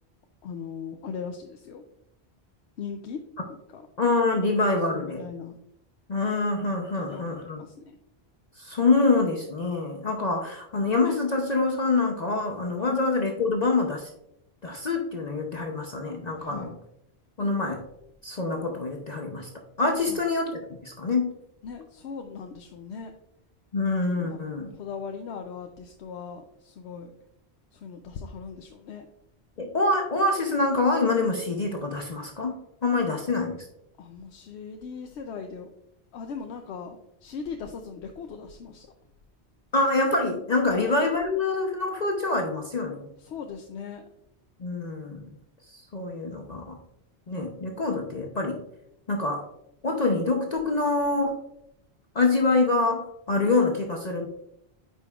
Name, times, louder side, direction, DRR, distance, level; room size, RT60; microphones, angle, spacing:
voice 1, 0.4-1.8 2.8-3.2 3.7-3.9 4.9-5.6 6.9-8.0 12.8-13.0 16.4-16.7 20.0-20.2 21.6-23.1 24.2-24.4 24.7-27.1 27.7-29.1 34.0-35.7 36.1-38.9 40.7-40.9 43.2-44.0, left 6 dB, 85° left, 5 dB, 0.9 m, -39 dB
voice 2, 4.0-5.2 6.1-7.6 8.6-14.1 14.6-16.8 17.4-17.8 18.2-19.5 19.8-21.3 23.7-24.7 29.6-33.7 39.7-43.1 44.6-45.3 45.7-46.8 47.3-48.6 49.1-49.4 49.8-51.4 52.1-54.3, left 3 dB, 45° left, 2 dB, 0.7 m, -25 dB
8.6 x 5.3 x 2.3 m, 0.79 s
omnidirectional pair, 1.1 m